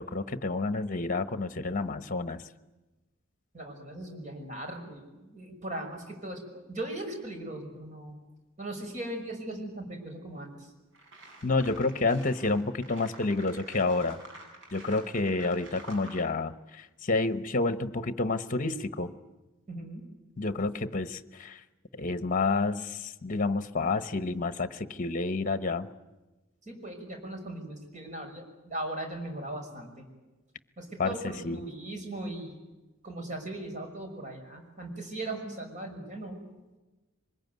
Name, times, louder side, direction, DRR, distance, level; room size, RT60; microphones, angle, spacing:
voice 1, 0.0-2.5 11.4-14.2 14.7-19.1 20.4-21.6 21.9-25.9 31.0-31.6, left 3 dB, 40° left, 12 dB, 1.1 m, -29 dB
voice 2, 3.5-8.2 8.6-10.7 19.7-20.0 26.6-30.1 30.8-32.6 33.0-36.4, right 1 dB, 35° right, 3 dB, 6.0 m, -39 dB
sound 1, 10.5-10.6 10.9-16.3, right 1 dB, 60° right, 7.8 m, -49 dB
24.0 x 21.0 x 9.5 m, 1.1 s
head